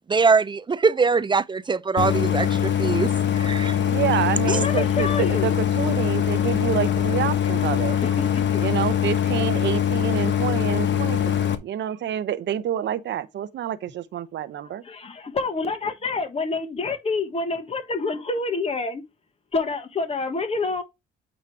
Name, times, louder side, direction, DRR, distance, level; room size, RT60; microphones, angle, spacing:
voice 1, 0.1-3.1 3.4-3.8 4.5-4.6, right 4 dB, 25° right, 0.5 m, -22 dB
Idling, 2.0-11.5, left 10 dB, 65° left, 1.1 m, -22 dB
voice 2, 3.9-8.0 8.6-14.8, right 10 dB, 65° right, 0.8 m, -28 dB
voice 3, 4.5-5.6 7.5-7.6 8.0-8.6 14.8-19.0 19.5-20.8, left 3 dB, 30° left, 1.3 m, -27 dB
8.6 x 3.1 x 4.6 m
cardioid pair, 90°, 20 cm